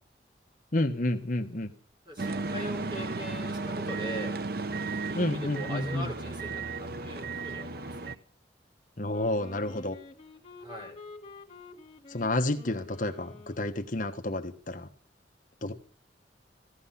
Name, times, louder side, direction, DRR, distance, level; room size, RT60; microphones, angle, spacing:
voice 1, 0.7-1.7 5.1-6.1 9.0-10.0 12.1-14.9 15.6-15.7, left 1 dB, 45° left, 6 dB, 1.3 m, -30 dB
voice 2, 2.1-4.3 5.1-8.1 10.6-10.9, equal, 25° right, 1 dB, 4.6 m, -41 dB
sound 1, 2.2-8.1, right 3 dB, 55° right, 0.8 m, -34 dB
Wind instrument woodwind instrument, 9.1-14.1, left 3 dB, 30° left, 1.9 m, -49 dB
16.5 x 13.0 x 5.7 m, 0.42 s
head